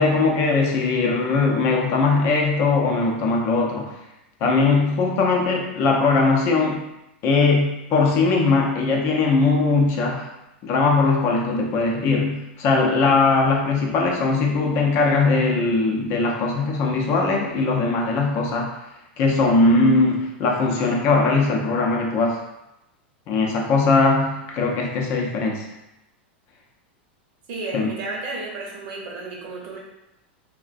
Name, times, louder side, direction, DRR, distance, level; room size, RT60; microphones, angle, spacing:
voice 1, 0.0-3.9 4.4-6.9 7.2-10.3 10.6-18.7 19.2-22.4 23.3-25.6 27.7-27.9, left 3 dB, 45° left, 0 dB, 0.5 m, -20 dB
voice 2, 27.5-29.8, right 3 dB, 60° right, -2 dB, 0.8 m, -32 dB
2.4 x 2.1 x 2.4 m, 0.91 s
hypercardioid pair, 120°, 6 cm